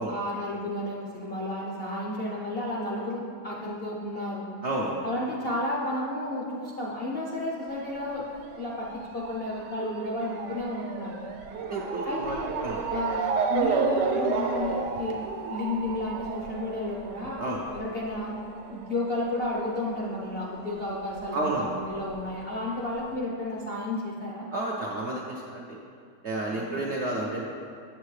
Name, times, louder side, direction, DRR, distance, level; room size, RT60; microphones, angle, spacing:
voice 1, 0.0-4.5 5.0-8.3 8.6-11.1 12.0-12.5 12.9-13.2 13.5-15.2 15.5-17.4 17.7-18.4 18.7-24.5 26.5-26.8, left 1 dB, 55° left, -4 dB, 0.6 m, -32 dB
voice 2, 4.6-5.0 11.6-12.8 17.4-17.6 21.3-21.7 24.5-25.8 26.2-27.4, right 2 dB, 65° right, -3 dB, 0.7 m, -31 dB
Motor vehicle (road) / Siren, 7.7-20.7 21.0-22.2 22.8-22.9 23.1-23.2, right 5 dB, 80° right, 1.3 m, -32 dB
7.6 x 7.4 x 3.2 m, 2.3 s
omnidirectional pair, 1.8 m